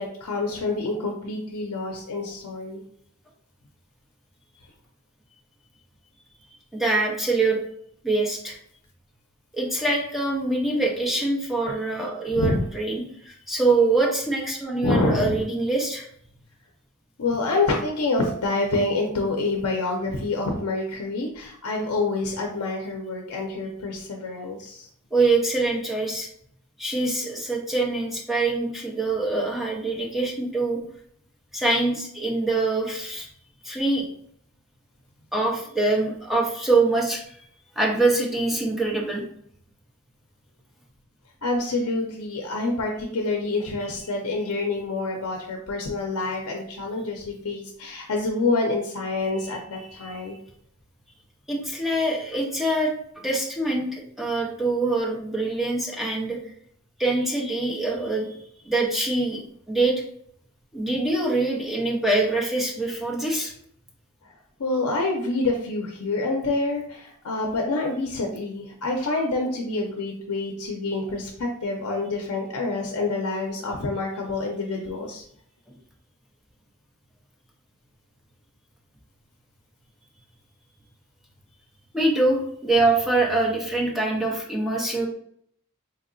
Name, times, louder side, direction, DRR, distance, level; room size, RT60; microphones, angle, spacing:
voice 1, 0.0-2.8 12.3-12.6 14.8-15.4 17.2-24.9 41.4-50.4 64.2-64.3 64.6-75.2, left 2 dB, 80° left, 1 dB, 0.5 m, -27 dB
voice 2, 6.7-7.6 8.0-8.6 9.5-16.1 25.1-26.3 26.8-30.8 31.5-33.3 33.6-34.1 35.3-37.2 37.8-39.2 49.9-50.4 51.5-56.4 57.0-58.3 58.6-59.4 59.7-59.9 60.7-63.5 81.9-85.1, right 2 dB, ahead, -3 dB, 0.7 m, -24 dB
4.1 x 2.7 x 2.6 m, 0.67 s
head